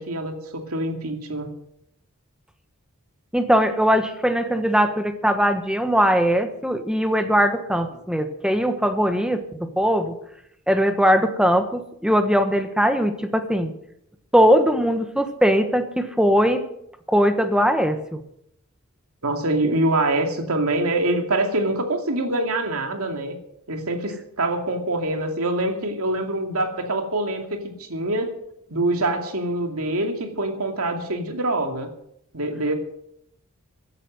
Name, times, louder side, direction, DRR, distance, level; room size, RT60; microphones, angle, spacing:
voice 1, 0.0-1.5 19.2-23.4 23.7-28.3 28.7-31.9 32.3-32.8, right 2 dB, 80° right, 4 dB, 2.5 m, -25 dB
voice 2, 3.3-10.2 10.7-13.7 14.3-16.6 17.1-18.2, equal, 5° right, 7 dB, 1.2 m, -20 dB
15.5 x 11.0 x 6.5 m, 0.75 s
head